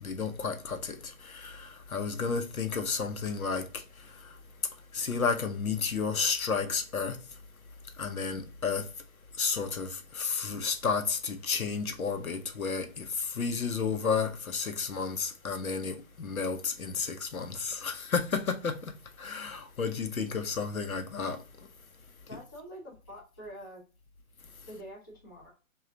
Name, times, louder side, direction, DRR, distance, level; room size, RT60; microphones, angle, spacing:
voice 1, 0.0-3.8 4.9-7.2 8.0-8.9 9.4-18.9 19.2-21.4, left 5 dB, 90° left, 0.8 m, -32 dB
voice 2, 22.3-23.8 24.7-25.5, equal, 15° left, 0.4 m, -46 dB
3.7 x 2.4 x 4.2 m
figure-of-eight pair, 145°, 41 cm